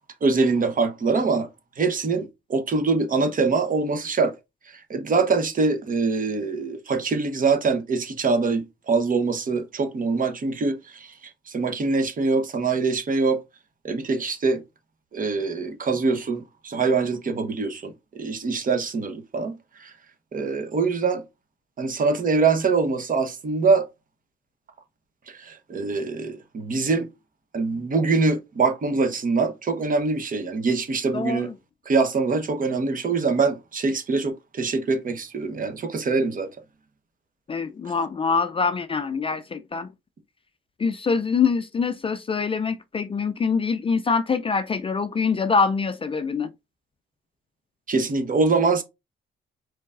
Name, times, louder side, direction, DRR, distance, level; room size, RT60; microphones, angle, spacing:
voice 1, 0.2-1.5 1.8-4.3 4.7-11.1 11.5-13.4 13.8-14.6 15.1-19.9 20.3-21.2 21.8-23.8 25.3-27.1 27.5-31.5 31.9-36.5 47.9-48.8, right 4 dB, 45° right, 1.0 m, -24 dB
voice 2, 31.1-31.5 37.5-39.9 40.8-46.5, left 5 dB, 25° left, 0.4 m, -24 dB
5.0 x 3.9 x 2.5 m
cardioid pair, 90°, 20 cm